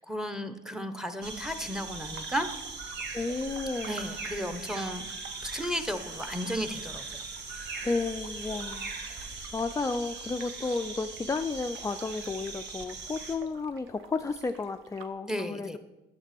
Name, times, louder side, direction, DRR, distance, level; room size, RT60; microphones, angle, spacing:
voice 1, 0.0-2.5 3.8-5.1 5.4-7.2 15.3-15.8, equal, 5° right, 9 dB, 1.0 m, -34 dB
sound 1, 1.2-13.4, right 4 dB, 60° right, 1.5 m, -40 dB
sound 2, 2.1-15.1, right 6 dB, 90° right, 0.9 m, -52 dB
voice 2, 3.1-4.0 7.8-8.9 9.5-15.8, left 3 dB, 15° left, 7 dB, 0.4 m, -32 dB
10.0 x 7.5 x 6.0 m, 1.0 s
cardioid pair, 90°, 20 cm